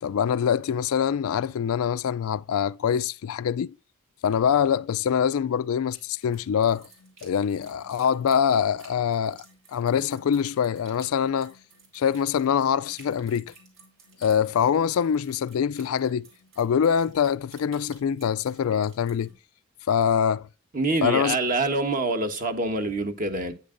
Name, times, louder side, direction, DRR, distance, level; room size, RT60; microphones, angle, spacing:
voice 1, 0.0-3.7 4.2-6.9 7.2-9.4 9.7-11.5 11.9-13.5 14.2-16.3 16.6-19.3 19.9-20.5 21.0-21.4, left 8 dB, 80° left, 0.3 m, -24 dB
sound 1, 5.9-19.3, right 1 dB, 65° right, 4.5 m, -54 dB
voice 2, 20.7-23.5, right 2 dB, 40° right, 1.3 m, -26 dB
9.8 x 8.3 x 2.6 m
head